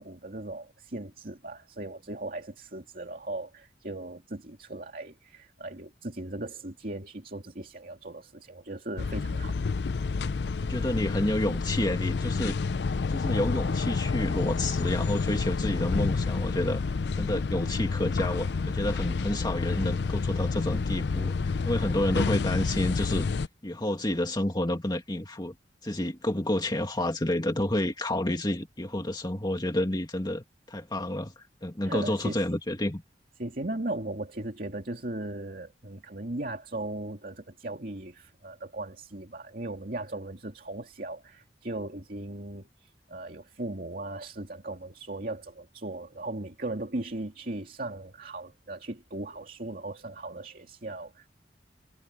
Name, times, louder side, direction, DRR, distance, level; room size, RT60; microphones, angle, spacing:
voice 1, 0.0-9.6 31.8-32.4 33.4-51.3, right 2 dB, 55° right, 2.5 m, -38 dB
sound 1, 9.0-23.5, left 4 dB, 70° left, 0.5 m, -29 dB
voice 2, 10.6-12.6 13.1-16.8 17.2-23.3 23.6-25.5 25.8-33.0, left 1 dB, 25° left, 2.2 m, -30 dB
head